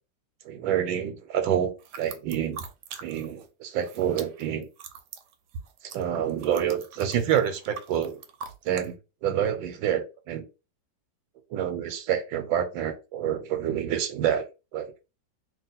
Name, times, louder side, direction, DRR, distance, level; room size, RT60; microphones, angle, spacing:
voice 1, 0.4-1.7 2.0-2.6 3.0-4.7 5.8-8.2 8.6-10.4 11.5-14.5 14.7-14.9, right 9 dB, 90° right, 1.4 m, -27 dB
sound 1, 1.8-3.5 3.7-8.9, right 6 dB, 70° right, 1.1 m, -43 dB
2.9 x 2.8 x 4.0 m
omnidirectional pair, 2.1 m